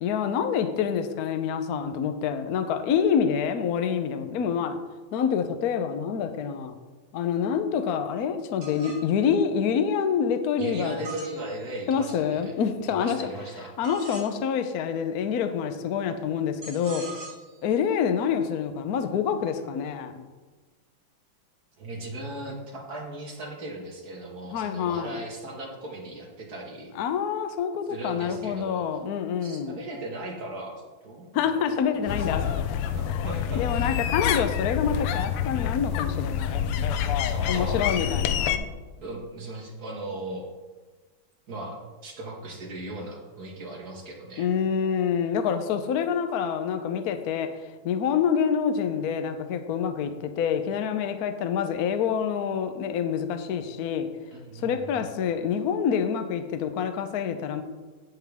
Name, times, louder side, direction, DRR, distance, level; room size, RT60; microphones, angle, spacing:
voice 1, 0.0-4.8 5.1-6.8 7.1-11.0 11.9-13.3 13.8-17.1 17.6-20.2 24.5-25.1 26.9-29.7 31.3-32.4 33.1-33.3 33.5-36.6 37.5-38.7 44.4-47.5 47.8-54.1 54.5-57.6, left 7 dB, 65° left, 8 dB, 1.0 m, -27 dB
sound 1, 8.6-9.1 11.0-12.0 13.8-14.3 16.6-17.6, right 3 dB, 80° right, 4.2 m, -41 dB
voice 2, 10.6-12.5 12.9-13.7 21.8-26.9 27.9-28.8 29.4-30.8 31.0-32.5 32.9-34.0 36.6-36.8 37.3-37.8 39.0-40.5 41.5-44.5 54.3-55.0, right 1 dB, 45° right, -1 dB, 2.3 m, -38 dB
sound 2, 32.1-38.6, left 9 dB, 90° left, 1.6 m, -27 dB
17.0 x 5.9 x 3.5 m, 1.3 s
omnidirectional pair, 2.4 m